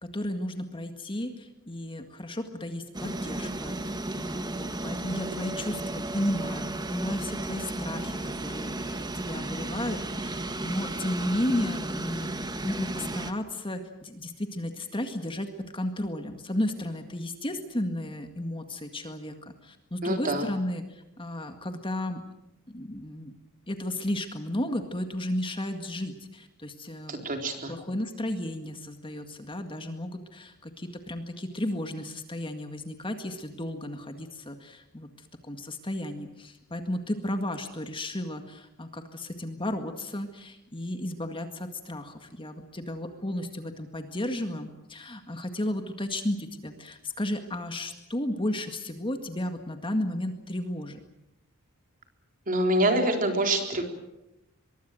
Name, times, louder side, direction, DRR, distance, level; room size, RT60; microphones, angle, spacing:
voice 1, 0.0-12.3 12.6-22.2 22.7-23.3 23.7-27.2 27.7-35.1 35.4-51.0, left 1 dB, 25° left, 6 dB, 1.9 m, -33 dB
sound 1, 2.9-13.3, right 2 dB, 20° right, 1.4 m, -34 dB
voice 2, 20.0-20.4 27.1-27.7 52.5-53.8, right 1 dB, 40° right, 4 dB, 4.0 m, -25 dB
23.5 x 23.0 x 7.7 m, 0.92 s
head